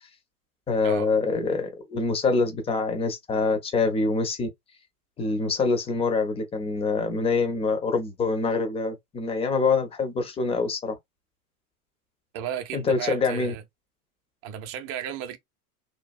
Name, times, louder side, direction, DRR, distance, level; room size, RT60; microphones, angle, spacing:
voice 1, 0.7-4.5 5.2-11.0 12.7-13.5, left 4 dB, 15° left, 0.5 m, -25 dB
voice 2, 12.3-13.6 14.4-15.4, right 9 dB, 30° right, 0.6 m, -34 dB
3.1 x 2.2 x 2.3 m
figure-of-eight pair, 90°, 45 cm